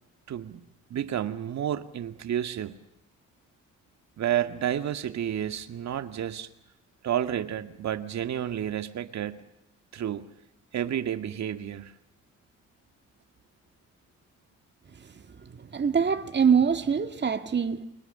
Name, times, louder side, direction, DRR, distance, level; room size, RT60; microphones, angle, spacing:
voice 1, 0.3-0.6 0.9-2.8 4.2-6.5 7.0-9.4 9.9-10.3 10.7-11.9, right 10 dB, 65° right, 2.0 m, -30 dB
voice 2, 15.6-17.8, right 6 dB, 35° right, 2.1 m, -24 dB
30.0 x 23.5 x 6.9 m
cardioid pair, 90°, 30 cm